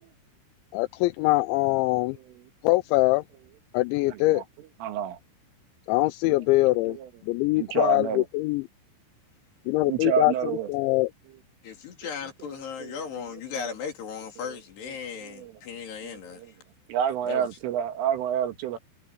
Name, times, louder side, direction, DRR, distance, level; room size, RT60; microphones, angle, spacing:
voice 1, 0.7-2.2 2.6-3.2 3.7-4.4 5.9-7.0 7.2-8.7 9.7-11.1, left 21 dB, 85° left, 2.8 m, -23 dB
voice 2, 4.1-4.4 4.8-5.2 6.6-7.1 7.6-8.2 9.9-10.7 12.8-13.0 15.2-15.5 16.0-16.5 16.9-18.8, right 9 dB, 90° right, 4.6 m, -29 dB
voice 3, 11.6-16.4 17.2-17.5, left 6 dB, 60° left, 5.0 m, -36 dB
omnidirectional pair, 5.6 m